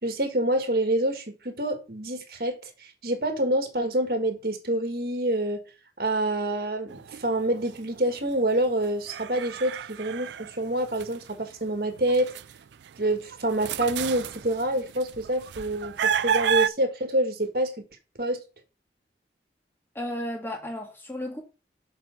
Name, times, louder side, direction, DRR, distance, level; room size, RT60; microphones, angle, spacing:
voice 1, 0.0-5.6 6.0-12.3 13.0-17.7 18.2-18.4, right 1 dB, 55° right, 1.7 m, -27 dB
sound 1, 6.9-8.2 8.7-11.5 12.0-16.7, right 7 dB, 85° right, 0.4 m, -31 dB
voice 2, 20.0-21.4, left 1 dB, 15° left, 1.9 m, -33 dB
7.3 x 4.8 x 6.2 m
head